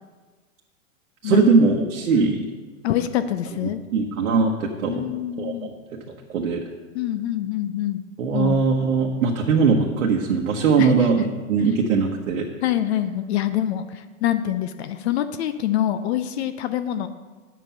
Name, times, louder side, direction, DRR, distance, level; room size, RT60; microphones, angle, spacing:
voice 1, 1.2-2.4 3.9-5.7 6.3-6.6 8.2-12.5, right 5 dB, 75° right, -1 dB, 1.3 m, -20 dB
voice 2, 2.8-3.8 4.9-5.7 6.9-8.0 8.3-8.6 10.8-11.1 12.6-17.1, left 12 dB, 55° left, 11 dB, 0.7 m, -25 dB
8.9 x 7.6 x 5.6 m, 1.4 s
hypercardioid pair, 120°, 41 cm